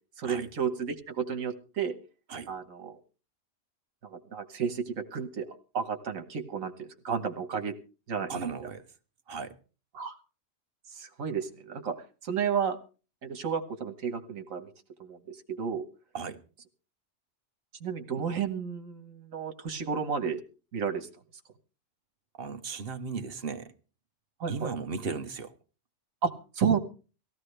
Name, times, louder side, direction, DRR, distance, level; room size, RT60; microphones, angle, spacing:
voice 1, 0.2-1.9 2.5-3.0 4.0-5.5 5.7-7.8 8.1-8.3 9.9-10.2 10.9-12.8 13.2-14.7 15.0-15.9 17.8-20.4 20.7-21.1 24.4-24.7 26.2-26.8, right 6 dB, 85° right, 1.7 m, -32 dB
voice 2, 8.3-8.8 9.3-9.5 16.1-16.4 22.4-23.7 24.5-25.5, right 5 dB, 50° right, 1.2 m, -36 dB
18.5 x 15.5 x 3.3 m
omnidirectional pair, 1.4 m